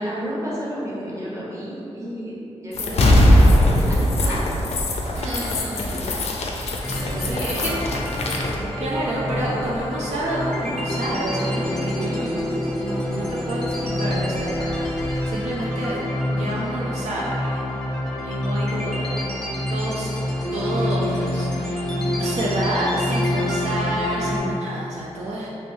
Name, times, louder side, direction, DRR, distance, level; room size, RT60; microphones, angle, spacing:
voice 1, 0.0-2.3 2.6-4.4 5.8-6.0 7.1-7.6 8.5-8.7 12.0-12.4, equal, 25° right, -7 dB, 0.9 m, -32 dB
sound 1, 2.7-8.5, left 1 dB, 70° left, 0.4 m, -20 dB
sound 2, 2.8-15.3, equal, 60° right, 1.1 m, -36 dB
voice 2, 5.2-6.2 6.7-7.7 8.8-12.4 12.8-14.9 15.2-20.1 20.5-21.9 22.2-25.5, right 1 dB, 80° right, -5 dB, 0.4 m, -29 dB
sound 3, 6.8-24.4, left 1 dB, 5° left, 0.5 m, -27 dB
3.1 x 2.9 x 2.6 m, 2.8 s
wide cardioid pair, 85°, 11 cm